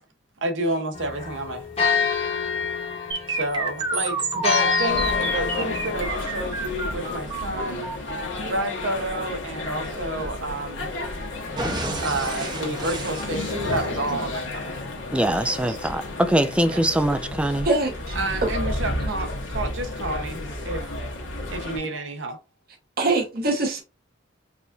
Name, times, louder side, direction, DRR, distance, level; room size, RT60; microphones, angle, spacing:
voice 1, 0.4-2.1 3.3-7.9 8.5-10.9 12.0-14.7 15.7-15.8 16.7-16.8 18.1-20.9 21.5-22.4, right 2 dB, 75° right, 0.9 m, -30 dB
sound 1, 0.9-6.0, left 6 dB, 30° left, 1.0 m, -26 dB
sound 2, 3.1-11.1 11.6-14.1, right 3 dB, 20° right, 0.7 m, -31 dB
sound 3, 4.9-21.8, left 2 dB, 75° left, 1.3 m, -32 dB
voice 2, 15.1-17.7, right 1 dB, 5° right, 0.3 m, -22 dB
voice 3, 17.6-18.2 23.0-23.8, right 2 dB, 50° right, 1.1 m, -23 dB
4.8 x 2.5 x 2.5 m
head